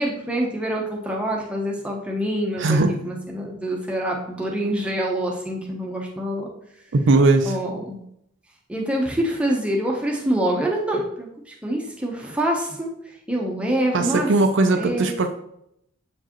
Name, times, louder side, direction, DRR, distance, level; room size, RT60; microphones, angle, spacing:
voice 1, 0.0-2.8 3.0-6.5 7.4-8.0 8.7-11.3 11.6-12.9 13.3-14.3 14.8-15.1, right 1 dB, 5° right, -1 dB, 0.8 m, -25 dB
voice 2, 2.6-2.9 6.9-7.6 13.9-15.3, right 3 dB, 55° right, 5 dB, 0.5 m, -19 dB
7.4 x 4.6 x 3.0 m, 0.76 s
head